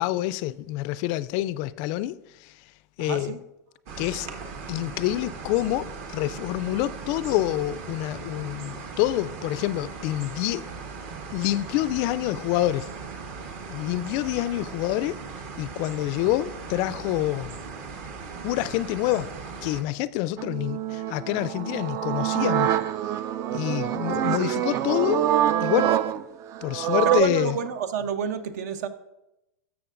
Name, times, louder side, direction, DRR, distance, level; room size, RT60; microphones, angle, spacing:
voice 1, 0.0-2.1 2.4-2.5 3.0-3.3 4.0-4.3 4.7-5.9 6.1-10.6 11.3-12.9 13.7-15.2 15.6-17.6 18.4-19.3 19.6-22.7 23.5-25.3 25.6-25.9 26.6-27.5, left 15 dB, 45° left, 0.3 m, -27 dB
voice 2, 3.0-3.4 24.2-25.2 27.0-28.9, right 7 dB, 65° right, 0.8 m, -29 dB
sound 1, 3.9-19.8, right 5 dB, 50° right, 1.2 m, -38 dB
sound 2, 20.4-27.2, right 11 dB, 30° right, 0.3 m, -26 dB
13.0 x 6.8 x 2.5 m
hypercardioid pair, 120°, 9 cm